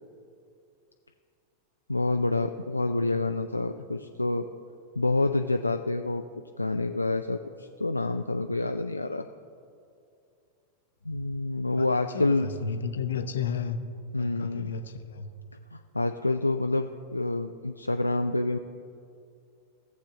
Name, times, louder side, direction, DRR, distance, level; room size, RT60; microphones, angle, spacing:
voice 1, 1.9-4.5 5.0-6.2 6.6-9.3 11.0-12.5 14.1-14.8 15.7-18.6, left 2 dB, 85° left, 6 dB, 0.3 m, -28 dB
voice 2, 11.8-13.8 14.2-15.3, left 6 dB, 65° left, 8 dB, 0.7 m, -33 dB
17.0 x 7.5 x 3.7 m, 2.4 s
figure-of-eight pair, 90°, 0 cm